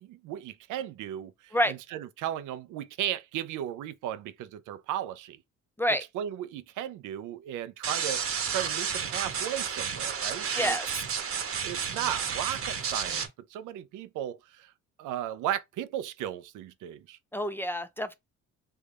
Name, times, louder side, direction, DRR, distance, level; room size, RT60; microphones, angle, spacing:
voice 1, 0.0-5.4 6.1-8.2 8.5-10.9 11.6-13.2 13.5-14.7 15.0-17.2, right 11 dB, 90° right, 0.5 m, -35 dB
sound 1, 7.8-13.3, right 7 dB, 50° right, 0.9 m, -31 dB
voice 2, 10.6-10.9 17.3-18.1, equal, 10° left, 0.3 m, -27 dB
3.5 x 3.2 x 2.4 m
cardioid pair, 90°, 30 cm